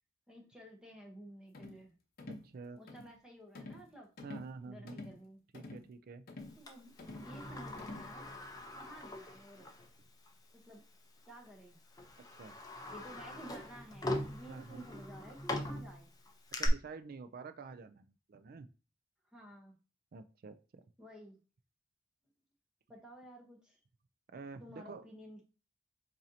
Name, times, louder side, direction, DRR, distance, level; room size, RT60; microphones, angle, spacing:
voice 1, 0.3-1.9 2.8-4.1 4.6-5.4 6.6-8.2 8.7-9.7 10.7-10.8 11.3-11.8 12.9-16.1 19.3-19.7 21.0-21.4 22.9-23.8 24.6-25.4, right 1 dB, 5° right, -1 dB, 0.9 m, -53 dB
sound 1, 1.5-1.8 2.2-2.5 2.9-3.1 3.5-3.9 4.2-4.5 4.9-5.2 5.5-5.9 6.3-6.6 7.0-7.3 7.8-8.1, left 2 dB, 50° left, 0.8 m, -48 dB
voice 2, 2.4-2.8 4.2-5.0 5.5-6.2 10.0-10.1 12.4-12.5 14.5-14.8 16.6-18.7 20.1-20.6 24.3-25.1, right 4 dB, 50° right, 11 dB, 0.4 m, -48 dB
Sliding door, 6.7-9.9 10.3-10.4 11.3-11.5 12.0-16.7, left 1 dB, 20° left, 0.6 m, -42 dB
7.1 x 2.7 x 2.8 m, 0.34 s
head